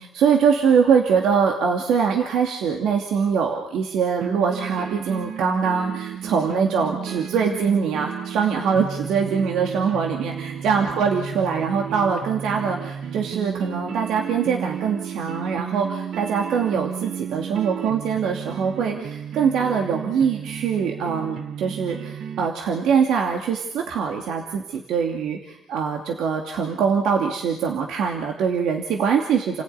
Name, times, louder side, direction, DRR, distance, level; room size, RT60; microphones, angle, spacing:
voice 1, 0.0-10.3 10.6-29.6, right 6 dB, 85° right, 2 dB, 2.6 m, -23 dB
sound 1, 4.2-22.5, right 8 dB, 65° right, 1.3 m, -33 dB
29.5 x 16.0 x 9.5 m, 0.90 s
cardioid pair, 90°, 0 cm